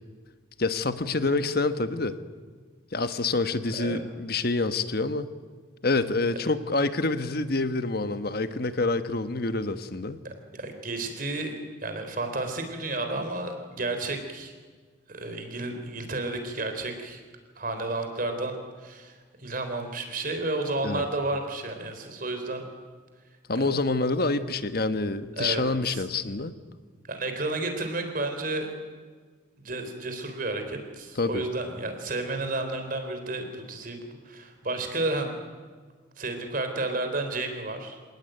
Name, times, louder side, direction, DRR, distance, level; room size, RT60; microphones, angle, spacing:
voice 1, 0.6-2.2 2.9-5.3 5.8-10.2 20.8-21.0 23.5-26.5 31.1-31.5, left 3 dB, 55° left, 11 dB, 1.3 m, -27 dB
voice 2, 10.6-11.5 11.8-14.5 15.1-17.2 17.6-18.5 18.8-19.1 19.4-22.6 23.6-23.7 25.4-26.0 27.1-28.7 29.6-34.0 34.3-35.3 36.2-38.0, right 2 dB, 45° right, 6 dB, 3.7 m, -31 dB
27.0 x 18.5 x 9.1 m, 1.5 s
head